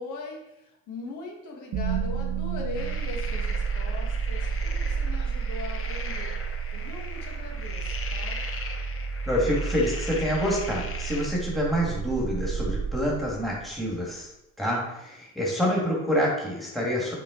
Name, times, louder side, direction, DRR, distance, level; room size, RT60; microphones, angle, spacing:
voice 1, 0.0-6.4 6.7-8.4, left 3 dB, 80° left, 0 dB, 1.5 m, -40 dB
sound 1, 1.7-13.8, right 6 dB, 70° right, 0.9 m, -31 dB
sound 2, 2.8-11.3, left 4 dB, 45° left, 0.9 m, -39 dB
voice 2, 9.3-14.3 14.6-17.1, equal, ahead, -4 dB, 1.8 m, -27 dB
5.8 x 4.3 x 3.7 m, 0.88 s
cardioid pair, 90°, 30 cm